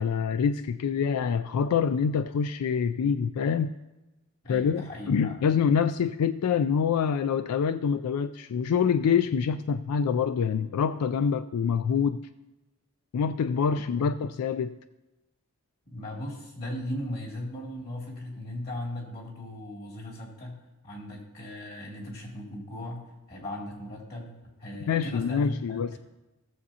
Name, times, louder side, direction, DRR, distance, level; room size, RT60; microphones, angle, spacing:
voice 1, 0.0-3.7 4.5-12.3 13.1-14.8 24.9-26.0, left 6 dB, 85° left, 0.3 m, -26 dB
voice 2, 4.4-5.5 13.8-14.2 15.9-20.6 20.8-23.0 23.3-26.0, left 1 dB, 45° left, 2.6 m, -38 dB
17.5 x 7.2 x 2.8 m
head